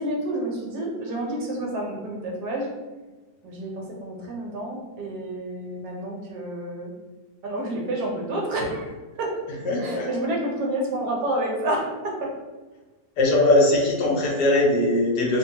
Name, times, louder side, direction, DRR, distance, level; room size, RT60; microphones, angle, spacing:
voice 1, 0.0-2.7 3.4-6.9 7.4-8.9 9.2-9.4 9.8-12.3, right 1 dB, 80° right, -1 dB, 1.3 m, -29 dB
voice 2, 9.6-10.1 13.2-15.4, left 1 dB, 90° left, -2 dB, 1.3 m, -20 dB
3.1 x 2.3 x 2.7 m, 1.3 s
omnidirectional pair, 1.8 m